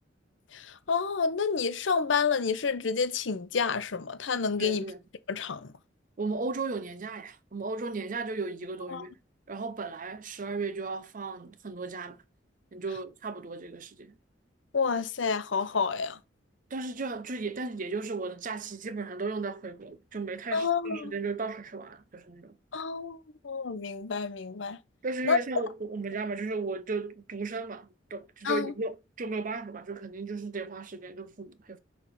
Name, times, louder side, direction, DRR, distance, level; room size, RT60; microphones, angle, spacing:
voice 1, 0.5-4.8 5.3-5.7 8.9-9.0 14.7-16.2 20.5-21.1 22.7-23.2 23.4-24.8 25.3-25.4 28.4-28.7, left 5 dB, 80° left, 0.7 m, -29 dB
voice 2, 4.6-5.0 6.2-9.2 9.5-12.2 12.7-14.1 16.7-22.6 25.0-31.8, right 3 dB, 45° right, 0.7 m, -35 dB
6.1 x 3.4 x 5.8 m
head